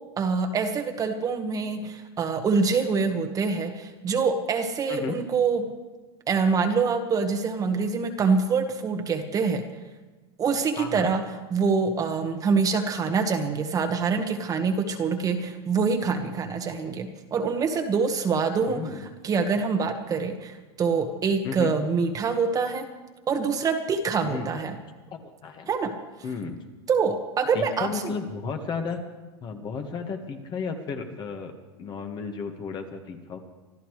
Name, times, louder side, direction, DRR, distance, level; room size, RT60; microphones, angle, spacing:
voice 1, 0.2-5.7 6.3-9.6 10.4-11.2 11.5-18.9 19.2-22.9 23.3-24.8 25.7-25.9 26.9-27.9, right 5 dB, 25° right, 5 dB, 1.5 m, -25 dB
voice 2, 4.9-5.2 10.8-11.1 18.7-19.1 21.4-21.7 24.2-24.5 25.1-25.7 26.2-26.6 27.5-29.0 29.4-31.5 31.8-33.4, left 5 dB, 30° left, 5 dB, 1.7 m, -33 dB
25.5 x 13.5 x 3.3 m, 1.2 s
supercardioid pair, 125°, 14 cm